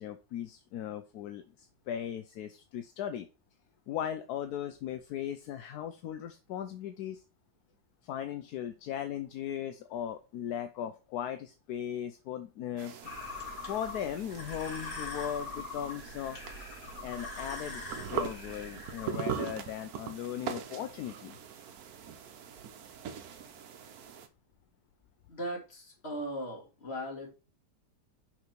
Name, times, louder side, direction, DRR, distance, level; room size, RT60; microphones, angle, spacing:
voice 1, 0.0-3.3 3.9-7.2 8.0-12.9 13.4-16.4 17.0-21.4, left 10 dB, 75° left, 8 dB, 1.1 m, -38 dB
sound 1, 12.8-24.3, right 8 dB, 65° right, 1.2 m, -41 dB
sound 2, 13.0-19.1, left 3 dB, 55° left, 2.4 m, -42 dB
voice 2, 25.3-27.3, equal, 35° left, 0 dB, 2.3 m, -38 dB
5.9 x 3.7 x 5.9 m, 0.32 s
omnidirectional pair, 1.8 m